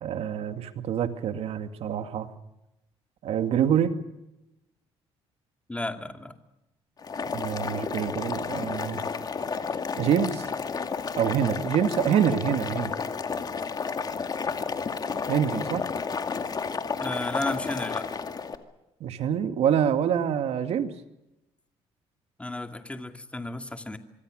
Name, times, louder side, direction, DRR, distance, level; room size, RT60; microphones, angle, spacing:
voice 1, 0.0-2.3 3.2-3.9 7.3-9.0 10.0-10.5 11.2-12.9 15.3-15.9 19.0-20.9, right 9 dB, 70° right, 9 dB, 2.3 m, -26 dB
voice 2, 5.7-6.3 17.0-18.1 22.4-24.0, left 2 dB, 10° left, 7 dB, 2.5 m, -33 dB
Boiling, 7.0-18.6, left 5 dB, 35° left, 2.2 m, -31 dB
25.0 x 24.0 x 6.5 m, 0.91 s
cardioid pair, 105°, 11 cm